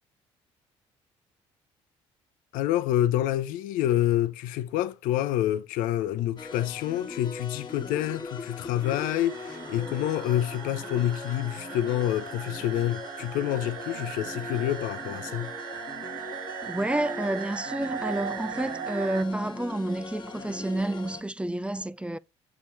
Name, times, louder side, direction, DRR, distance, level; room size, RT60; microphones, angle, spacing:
voice 1, 2.5-15.5, left 12 dB, 70° left, 0.7 m, -27 dB
sound 1, 6.4-21.2, left 4 dB, 30° left, 1.6 m, -40 dB
sound 2, 8.8-19.2, right 10 dB, 75° right, 0.7 m, -39 dB
voice 2, 16.6-22.2, right 1 dB, 10° right, 0.4 m, -30 dB
7.0 x 4.8 x 6.1 m
hypercardioid pair, 55°, 15 cm